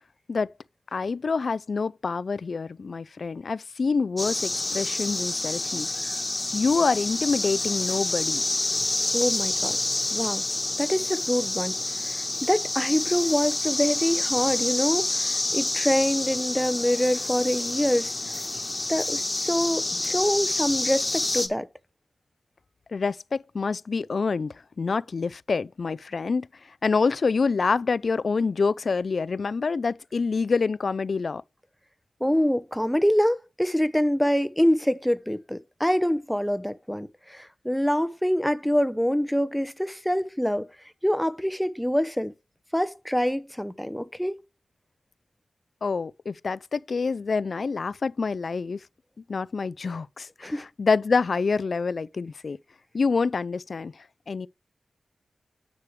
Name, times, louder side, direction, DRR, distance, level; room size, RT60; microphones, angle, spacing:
voice 1, 0.9-5.9 6.5-8.4 22.9-26.5 26.8-31.4 45.8-48.8 49.3-52.6 52.9-53.9 54.3-54.5, left 4 dB, 60° left, 0.4 m, -26 dB
sound 1, 4.2-21.5, left 2 dB, 25° left, 1.4 m, -28 dB
voice 2, 9.1-9.8 10.1-10.5 10.8-18.1 18.9-21.7 32.2-40.7 41.0-42.3 42.7-44.4 50.4-50.7, equal, ahead, 0.7 m, -25 dB
9.7 x 6.3 x 3.2 m
wide cardioid pair, 100°, 0 cm